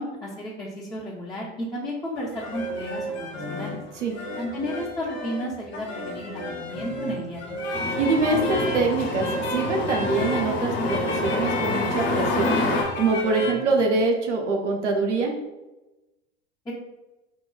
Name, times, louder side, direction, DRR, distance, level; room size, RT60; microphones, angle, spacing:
voice 1, 0.0-3.8 4.4-7.6 16.7-16.8, equal, 10° left, -6 dB, 0.5 m, -33 dB
sound 1, 2.2-13.5, left 1 dB, 30° left, 0.9 m, -32 dB
sound 2, 7.7-12.8, left 2 dB, 60° left, 1.0 m, -27 dB
voice 2, 8.0-12.6 13.0-15.3, right 3 dB, 85° right, 2 dB, 0.7 m, -24 dB
5.0 x 2.2 x 2.3 m, 1.0 s
hypercardioid pair, 85°, 35 cm